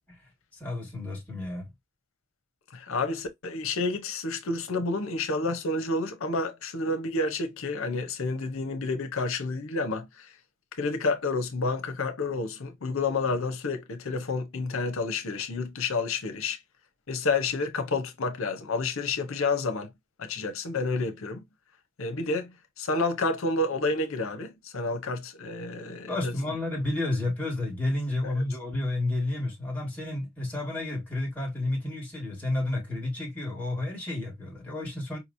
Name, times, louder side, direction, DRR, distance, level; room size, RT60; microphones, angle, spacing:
voice 1, 0.6-1.7 26.1-35.2, left 2 dB, 10° left, 1.7 m, -31 dB
voice 2, 2.7-10.3 10.8-16.6 17.1-19.9 20.2-21.4 22.0-22.5 22.8-26.3 28.2-28.4, left 3 dB, 80° left, 0.7 m, -29 dB
4.9 x 2.9 x 2.5 m
head